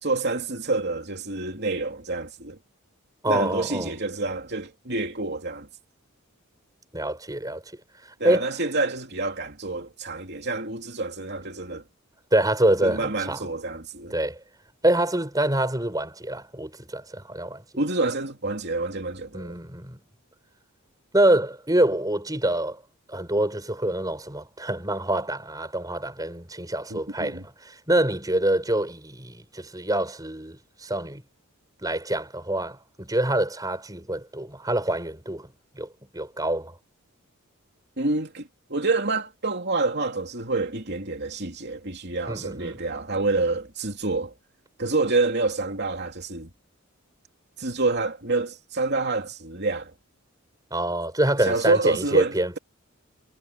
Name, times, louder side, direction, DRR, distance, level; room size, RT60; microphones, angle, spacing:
voice 1, 0.0-2.6 3.3-5.7 8.2-11.8 12.8-14.1 17.8-19.6 26.9-27.4 38.0-44.3 44.8-46.5 47.6-49.9 51.4-52.6, right 3 dB, 50° right, 3.0 m, -27 dB
voice 2, 3.2-3.9 6.9-7.6 8.2-8.5 12.3-13.5 14.1-14.4 14.8-17.6 19.3-20.0 21.1-22.8 23.1-31.2 31.8-35.5 35.8-35.9 36.1-36.7 42.3-42.8 50.7-52.5, right 1 dB, 15° right, 5.6 m, -26 dB
head